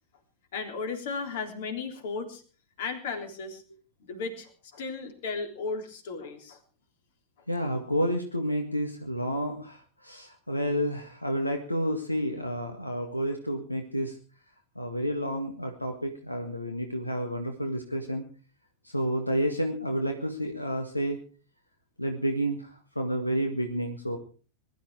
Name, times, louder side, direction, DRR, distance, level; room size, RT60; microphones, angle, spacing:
voice 1, 0.5-2.4 2.8-3.6 4.0-6.6, left 4 dB, 55° left, 6 dB, 3.5 m, -35 dB
voice 2, 7.5-14.1 14.8-18.2 18.8-21.2 22.0-24.2, equal, 85° left, 4 dB, 1.9 m, -30 dB
20.5 x 12.5 x 4.8 m, 0.38 s
figure-of-eight pair, 90°, 0 cm